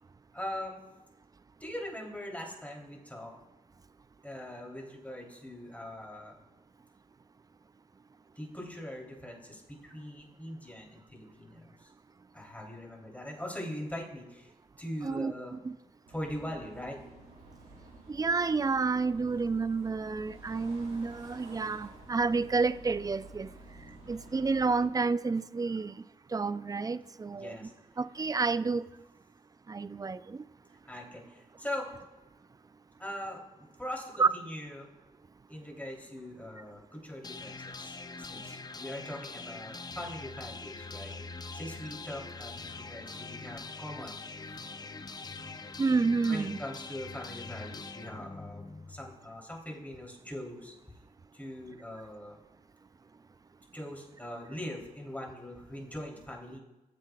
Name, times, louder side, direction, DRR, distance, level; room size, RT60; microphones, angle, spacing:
voice 1, 0.3-0.8 1.6-3.3 4.2-6.4 8.4-11.9 12.3-14.5 14.8-15.6 16.1-17.0 24.1-24.2 27.3-27.7 30.8-31.9 33.0-34.9 35.5-41.1 41.5-44.2 44.4-44.7 46.2-51.0 51.3-52.4 53.7-56.6, left 1 dB, 10° left, 3.1 m, -41 dB
voice 2, 15.0-15.8 18.1-23.5 24.1-25.9 26.3-27.6 28.0-28.9 29.7-30.4 34.2-34.3 45.8-46.6, right 4 dB, 25° right, 0.4 m, -29 dB
sound 1, 16.0-24.8, right 2 dB, 90° right, 2.5 m, -51 dB
sound 2, 37.2-49.2, left 4 dB, 25° left, 0.6 m, -43 dB
15.5 x 7.9 x 2.3 m
cardioid pair, 55°, 16 cm